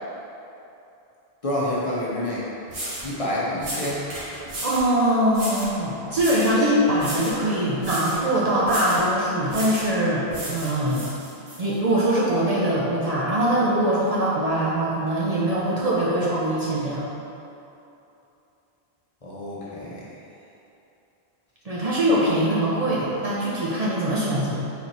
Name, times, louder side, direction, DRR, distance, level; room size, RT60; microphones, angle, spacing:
voice 1, 1.4-2.4 3.0-4.0 19.2-20.1, left 1 dB, 40° left, -7 dB, 0.7 m, -28 dB
sound 1, 2.2-2.3 2.7-3.1 3.6-4.9 5.3-5.7 6.1-6.6 7.0-7.4 7.8-8.2 8.6-9.1 9.5-9.9 10.3-11.6, right 1 dB, 75° right, 1.2 m, -34 dB
voice 2, 4.6-11.1 11.6-17.1 21.6-24.5, right 1 dB, 45° right, -7 dB, 0.6 m, -22 dB
4.3 x 3.0 x 4.0 m, 2.8 s
omnidirectional pair, 1.0 m